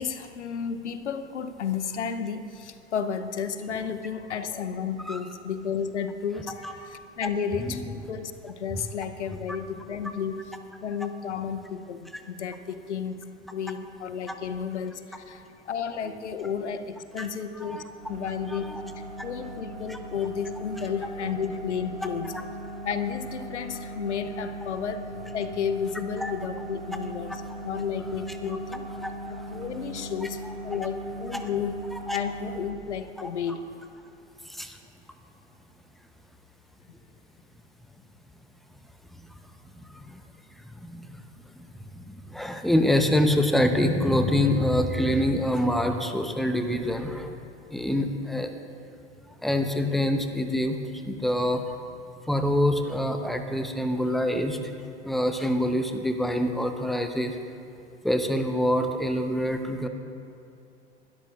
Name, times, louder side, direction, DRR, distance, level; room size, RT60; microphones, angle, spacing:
voice 1, 0.0-10.5 10.8-13.2 13.5-17.8 18.1-18.7 19.2-22.4 22.8-28.9 29.3-31.8 32.1-33.7, left 7 dB, 75° left, 10 dB, 0.9 m, -32 dB
sound 1, 18.0-32.7, right 1 dB, 75° right, 2.1 m, -39 dB
voice 2, 18.5-18.8 19.9-20.0 26.2-26.3 29.0-29.1 30.2-30.3 32.1-32.2 34.5-34.8 39.9-40.2 40.6-41.2 41.6-47.4 47.7-48.5 49.4-50.8 51.0-51.7 52.3-54.6 55.0-57.4 58.0-59.9, left 1 dB, ahead, 6 dB, 0.8 m, -26 dB
21.5 x 12.5 x 2.5 m, 2.6 s
figure-of-eight pair, 90°, 35 cm